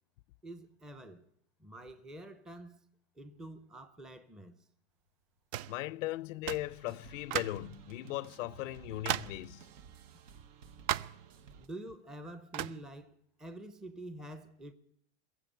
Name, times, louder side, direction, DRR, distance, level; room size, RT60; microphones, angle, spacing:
voice 1, 0.4-1.3 1.6-2.8 3.2-4.6 11.6-14.7, right 1 dB, ahead, 0.5 m, -47 dB
sound 1, 5.5-5.8 6.5-6.7 7.3-7.7 8.3-8.4 9.1-9.4 10.9-11.2 12.5-12.8, right 13 dB, 65° right, 0.5 m, -35 dB
voice 2, 5.7-9.7, left 17 dB, 80° left, 0.5 m, -38 dB
sound 2, 6.4-11.7, right 7 dB, 80° right, 1.3 m, -54 dB
21.0 x 7.7 x 8.5 m
supercardioid pair, 140°, 37 cm